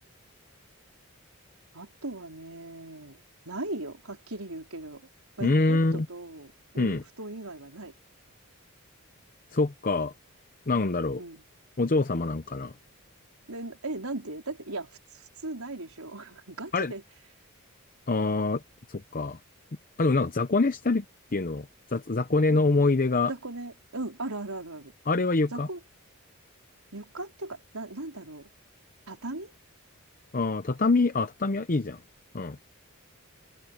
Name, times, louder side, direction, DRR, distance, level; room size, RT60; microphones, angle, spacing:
voice 1, 1.7-5.0 5.4-7.9 11.2-11.4 13.5-17.0 22.5-22.7 23.3-24.9 25.5-25.8 26.9-28.5 29.1-29.5, right 2 dB, 75° right, 4.2 m, -38 dB
voice 2, 5.4-6.1 6.8-7.0 9.5-10.1 10.7-11.2 11.8-12.7 16.7-16.9 18.1-18.6 18.9-19.4 20.0-21.0 21.3-23.3 25.1-25.7 30.3-32.0 32.3-32.6, left 3 dB, 40° left, 0.7 m, -25 dB
open air
head